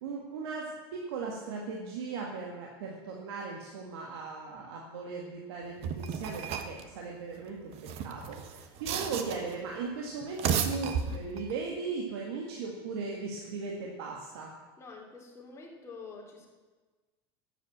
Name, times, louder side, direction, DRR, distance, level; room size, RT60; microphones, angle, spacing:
voice 1, 0.0-14.5, right 4 dB, 80° right, -1 dB, 2.0 m, -38 dB
sound 1, 5.8-6.8 7.7-9.6 10.2-11.5, right 7 dB, 50° right, 1.3 m, -33 dB
voice 2, 14.8-16.5, left 4 dB, 20° left, -2 dB, 3.4 m, -47 dB
11.5 x 8.3 x 7.4 m, 1.3 s
supercardioid pair, 125°, 13 cm